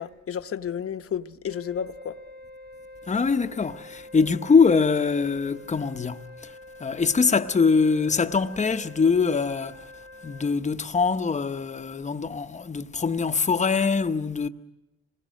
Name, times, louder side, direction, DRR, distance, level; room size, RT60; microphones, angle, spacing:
voice 1, 0.0-2.2, left 8 dB, 50° left, 1.0 m, -32 dB
Wind instrument woodwind instrument, 1.4-10.6, left 1 dB, 35° right, 1.2 m, -46 dB
voice 2, 3.1-6.5 6.8-9.9 10.2-14.5, left 5 dB, 25° left, 0.9 m, -23 dB
26.5 x 20.5 x 6.5 m
cardioid pair, 90°, 30 cm